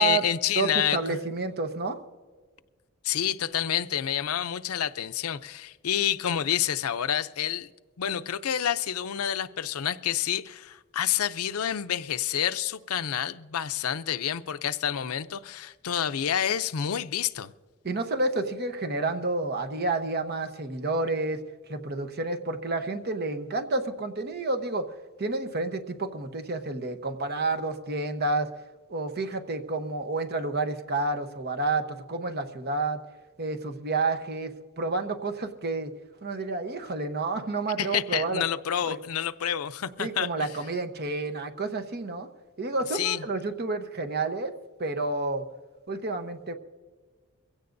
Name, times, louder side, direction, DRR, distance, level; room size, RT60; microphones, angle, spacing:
voice 1, 0.0-1.2 3.0-7.7 8.0-17.5 37.8-40.5 42.9-43.2, left 10 dB, 80° left, 0.5 m, -28 dB
voice 2, 0.6-2.0 17.8-21.4 21.7-24.9 25.2-28.5 28.9-33.0 33.4-35.9 36.2-38.4 38.8-39.0 40.0-42.3 42.6-44.5 44.8-45.4 45.9-46.5, right 3 dB, 45° right, 1.0 m, -30 dB
22.5 x 16.5 x 2.6 m
head